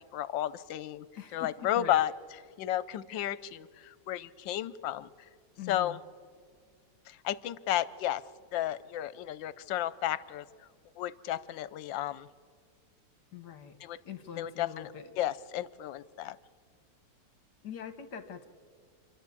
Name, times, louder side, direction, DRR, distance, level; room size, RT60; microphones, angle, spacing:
voice 1, 0.1-1.0 1.3-2.1 2.6-5.1 5.7-6.0 7.1-8.2 8.5-10.4 11.0-12.3 13.8-14.0 14.4-14.9 15.2-16.4, left 12 dB, 80° left, 17 dB, 1.4 m, -32 dB
voice 2, 1.1-2.0 5.6-6.0 13.3-13.8 14.0-15.1 17.6-18.5, left 8 dB, 65° left, 9 dB, 1.6 m, -43 dB
28.5 x 11.0 x 8.3 m, 2.1 s
omnidirectional pair, 2.0 m